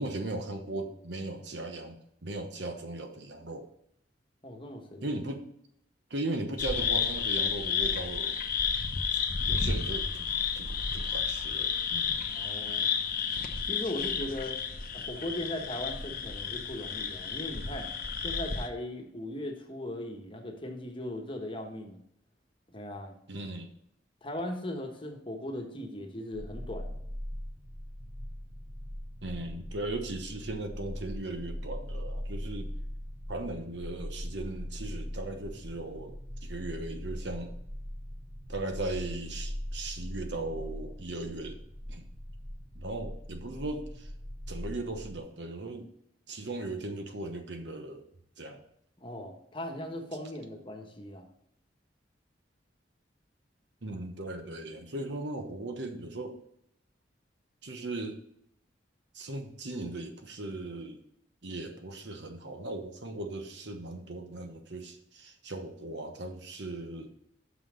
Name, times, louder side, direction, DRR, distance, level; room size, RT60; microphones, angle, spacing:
voice 1, 0.0-3.7 5.0-5.4 6.1-8.4 9.5-10.3 10.5-12.3 23.3-23.7 29.2-32.7 33.3-37.5 38.5-41.6 41.9-42.1 42.7-44.1 44.5-45.9 46.3-48.1 48.4-48.6 53.8-56.4 57.6-58.2 59.1-61.0 61.4-67.1, right 2 dB, 70° right, 6 dB, 1.0 m, -38 dB
voice 2, 4.4-5.1 12.3-12.9 13.6-14.6 14.9-17.9 18.2-22.0 22.7-23.1 24.2-26.9 49.0-51.3, left 1 dB, 30° left, 2 dB, 1.2 m, -38 dB
sound 1, 6.6-18.7, left 6 dB, 50° left, 0.8 m, -31 dB
sound 2, 26.3-45.2, equal, 45° right, 2.0 m, -40 dB
6.2 x 5.7 x 6.2 m, 0.73 s
head